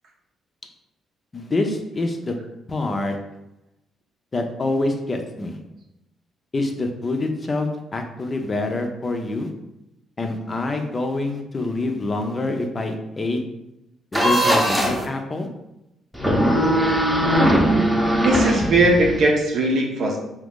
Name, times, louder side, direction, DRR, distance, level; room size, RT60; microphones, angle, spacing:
voice 1, 1.3-2.4 2.7-3.2 4.3-5.6 6.5-7.7 7.9-9.5 10.2-13.4 14.1-15.5, left 2 dB, 30° left, 4 dB, 0.5 m, -26 dB
sound 1, 14.1-15.1 16.1-19.2, equal, 5° right, 0.7 m, -19 dB
voice 2, 18.0-20.2, right 2 dB, 65° right, 1 dB, 0.7 m, -19 dB
2.7 x 2.5 x 3.6 m, 0.89 s
cardioid pair, 90°, 0 cm